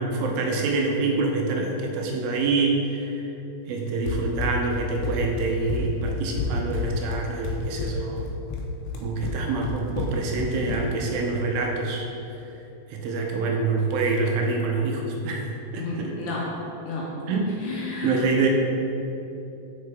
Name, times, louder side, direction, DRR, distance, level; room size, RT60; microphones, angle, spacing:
voice 1, 0.0-3.2 3.7-8.2 9.0-12.4 12.9-15.4 15.7-16.1 17.3-17.5 18.0-18.5, right 3 dB, 80° right, 1 dB, 2.4 m, -26 dB
Run, 4.1-11.1, left 4 dB, 90° left, 1.8 m, -30 dB
voice 2, 15.8-16.4 16.8-17.1 17.5-18.2, left 4 dB, 75° left, -5 dB, 1.9 m, -32 dB
6.6 x 5.6 x 3.4 m, 2.9 s
omnidirectional pair, 4.2 m